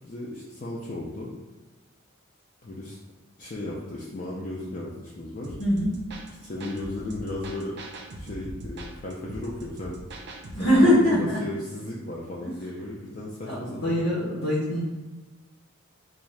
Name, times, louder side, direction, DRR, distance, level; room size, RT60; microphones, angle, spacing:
voice 1, 0.0-1.3 2.6-3.0 3.4-5.6 6.4-7.8 8.2-10.3 10.6-14.0, left 1 dB, 40° left, -4 dB, 0.4 m, -35 dB
sound 1, 5.4-10.8, right 1 dB, 55° right, 0.5 m, -41 dB
voice 2, 5.6-5.9 10.5-11.4 12.4-12.5 13.4-14.8, left 1 dB, 85° left, -8 dB, 1.1 m, -22 dB
3.6 x 2.5 x 3.2 m, 1.2 s
head